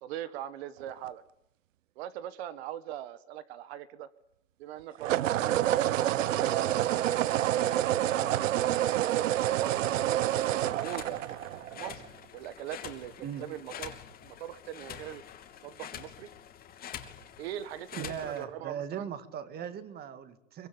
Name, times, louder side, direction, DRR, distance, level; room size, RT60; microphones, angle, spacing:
voice 1, 0.0-1.2 1.9-4.1 4.6-5.6 6.2-7.1 7.3-8.6 9.2-10.0 10.3-11.2 11.7-14.0 14.2-15.2 15.6-16.3 17.4-19.1, right 11 dB, 55° right, 13 dB, 1.7 m, -41 dB
sound 1, 0.8-1.1 5.0-12.1, right 12 dB, 80° right, 0.9 m, -28 dB
sound 2, 10.3-18.4, left 9 dB, 25° left, 2.7 m, -46 dB
voice 2, 18.0-20.7, right 8 dB, 25° right, 11 dB, 2.1 m, -38 dB
23.5 x 21.5 x 8.6 m, 0.79 s
hypercardioid pair, 140°, 38 cm